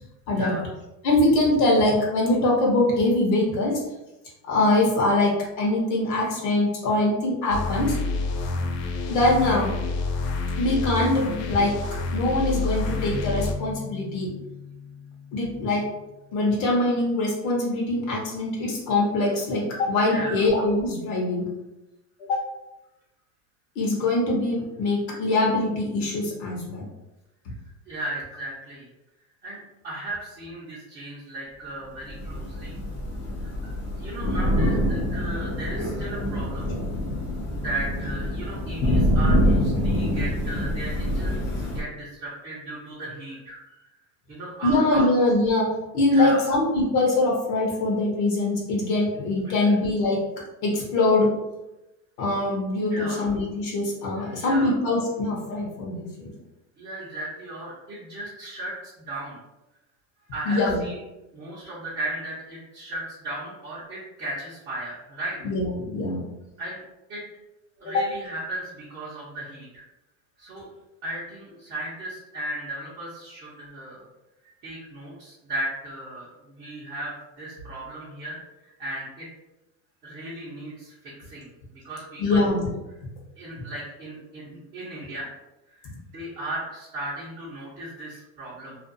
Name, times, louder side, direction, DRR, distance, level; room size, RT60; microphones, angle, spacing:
voice 1, 0.3-0.7 20.1-20.4 27.5-27.6 27.9-28.9 29.4-29.6 29.8-32.8 33.4-36.7 37.6-43.9 44.3-45.1 46.1-46.4 49.4-49.8 52.9-53.3 54.2-54.7 56.8-59.4 60.3-61.0 61.3-65.4 66.6-66.8 67.1-67.2 67.8-69.9 70.4-70.7 71.0-74.0 74.6-79.3 80.0-82.5 83.3-85.3 85.7-88.8, right 1 dB, 25° right, -8 dB, 0.6 m, -36 dB
voice 2, 1.0-3.8 4.5-8.0 9.1-9.8 10.6-11.7 12.1-14.3 15.3-15.8 16.3-21.4 22.3-22.4 23.8-26.9 36.6-36.8 44.6-45.7 45.9-50.2 50.6-51.3 52.2-56.3 60.5-60.9 65.4-66.2 67.8-68.0 82.2-82.7, left 2 dB, 50° left, -2 dB, 0.8 m, -23 dB
sound 1, 7.5-13.5, left 3 dB, 75° left, 0.6 m, -28 dB
sound 2, 13.1-16.8, left 4 dB, 70° right, 0.5 m, -40 dB
Thunder / Rain, 32.1-41.8, equal, 25° left, 0.4 m, -25 dB
2.5 x 2.2 x 2.5 m, 0.97 s
supercardioid pair, 130°, 48 cm